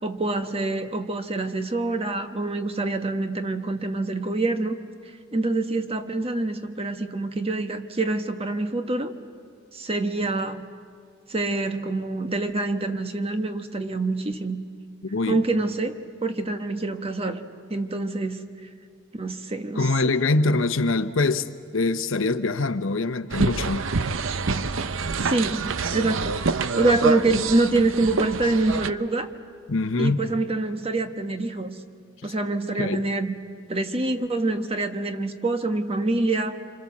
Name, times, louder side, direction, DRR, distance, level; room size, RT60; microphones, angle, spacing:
voice 1, 0.0-4.7 5.3-9.1 9.7-10.7 11.3-14.6 15.3-17.4 17.7-18.4 19.1-20.1 25.2-26.4 26.8-29.3 30.0-31.8 32.2-33.3 33.7-36.6, right 2 dB, 30° right, 1.2 m, -26 dB
voice 2, 19.8-21.5 21.7-23.8 29.7-30.2 32.8-33.0, left 3 dB, 80° left, 0.9 m, -23 dB
sound 1, 23.3-28.9, right 4 dB, 80° right, 0.7 m, -26 dB
27.0 x 26.5 x 7.3 m
head